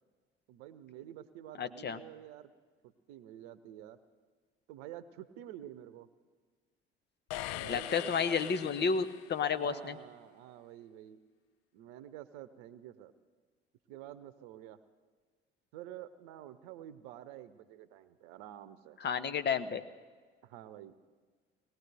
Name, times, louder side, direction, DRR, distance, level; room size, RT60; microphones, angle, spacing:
voice 1, 0.5-2.5 2.8-4.0 4.7-6.1 7.5-9.0 9.6-11.2 11.7-13.1 13.9-14.8 15.7-19.0 20.4-21.0, right 12 dB, 65° right, 13 dB, 0.8 m, -49 dB
voice 2, 1.6-2.0 7.7-10.0 19.0-19.8, left 6 dB, 35° left, 12 dB, 0.8 m, -31 dB
sound 1, 7.3-9.5, left 14 dB, 55° left, 0.5 m, -42 dB
19.5 x 17.5 x 3.5 m, 1.5 s
figure-of-eight pair, 55°, 31 cm